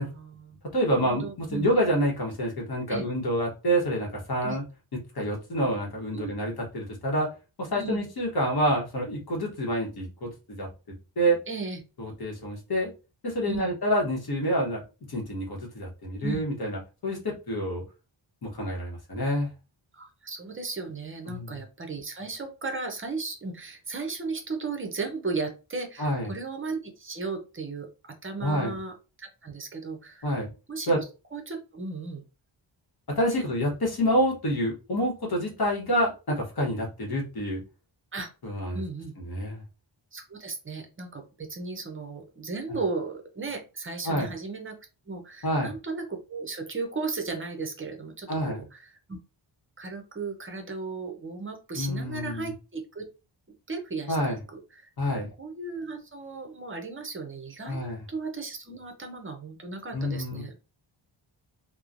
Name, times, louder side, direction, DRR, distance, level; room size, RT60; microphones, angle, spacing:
voice 1, 0.0-0.6 1.0-1.7 2.9-3.1 4.4-4.6 6.1-6.3 7.7-8.0 11.5-11.8 13.5-13.8 16.2-16.5 19.9-30.3 30.7-31.0 31.3-32.2 33.3-33.4 38.1-38.3 38.7-39.1 40.1-44.8 45.1-49.2 49.8-53.1 53.7-54.3 54.7-54.9 55.4-60.6, right 4 dB, 25° right, 3 dB, 0.5 m, -35 dB
voice 2, 0.7-4.6 5.1-7.3 7.6-10.7 11.2-11.4 12.0-12.9 13.2-14.8 15.1-17.8 18.4-19.5 21.3-21.6 26.0-26.3 28.4-28.7 30.2-30.5 30.9-31.0 33.1-37.6 38.4-38.8 39.2-39.6 44.0-44.3 45.4-45.7 48.3-48.6 51.8-52.5 54.1-54.4 55.0-55.3 57.7-58.0 59.9-60.4, equal, 50° left, -2 dB, 1.0 m, -27 dB
3.0 x 2.0 x 2.4 m, 0.31 s
wide cardioid pair, 175°, 49 cm